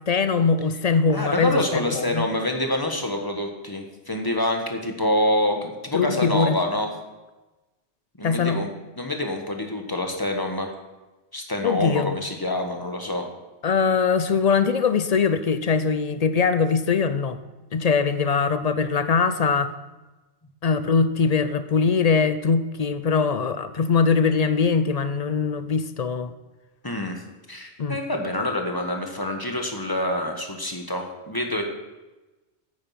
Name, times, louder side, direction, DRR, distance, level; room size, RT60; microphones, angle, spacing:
voice 1, 0.1-2.3 5.9-6.6 8.2-8.6 11.6-12.1 13.6-17.4 17.7-19.7 20.6-26.3 27.8-28.0, left 5 dB, 45° left, 11 dB, 0.5 m, -22 dB
voice 2, 1.1-6.9 8.2-8.7 9.0-10.7 11.3-13.3 26.8-27.2 27.5-31.7, left 1 dB, 20° left, 3 dB, 1.3 m, -26 dB
9.0 x 9.0 x 5.7 m, 1.1 s
omnidirectional pair, 1.2 m